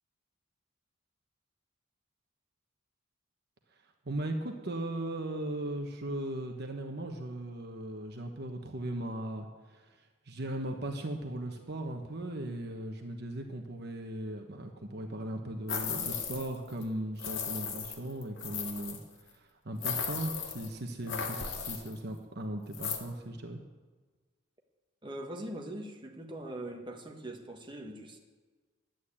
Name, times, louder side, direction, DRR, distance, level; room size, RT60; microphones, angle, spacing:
voice 1, 4.0-23.6, right 1 dB, 50° right, 4 dB, 1.1 m, -38 dB
sound 1, 15.7-16.6 16.8-16.9 17.2-19.0 19.8-20.7 21.1-21.9 22.7-23.0, left 6 dB, 65° left, 1.9 m, -36 dB
voice 2, 25.0-28.2, right 1 dB, 25° right, 2 dB, 1.4 m, -42 dB
11.5 x 9.3 x 8.7 m, 1.3 s
head